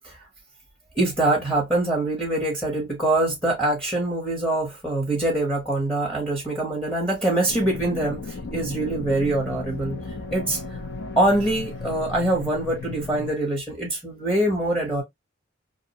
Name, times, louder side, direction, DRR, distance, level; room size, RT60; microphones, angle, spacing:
voice 1, 1.0-10.0 10.3-10.8 11.2-15.0, right 1 dB, 5° left, 0.7 m, -24 dB
sound 1, 7.5-13.3, left 3 dB, 65° left, 0.6 m, -35 dB
2.5 x 2.0 x 2.7 m
head